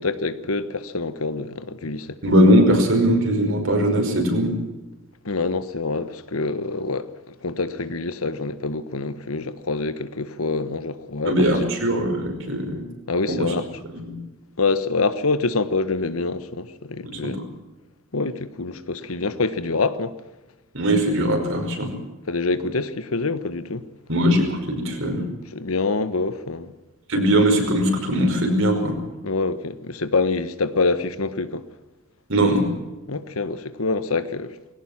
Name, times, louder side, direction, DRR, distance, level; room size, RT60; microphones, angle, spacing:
voice 1, 0.0-2.2 5.2-11.5 13.1-13.6 14.6-17.4 18.1-20.2 22.3-23.8 25.5-26.7 29.2-31.6 33.1-34.5, left 3 dB, 80° left, 1.3 m, -26 dB
voice 2, 2.2-4.5 11.3-12.8 13.3-13.5 13.9-14.2 17.0-17.4 20.7-21.9 24.1-25.3 27.1-29.0 32.3-32.7, equal, 65° right, 5.3 m, -20 dB
20.5 x 17.5 x 7.4 m
head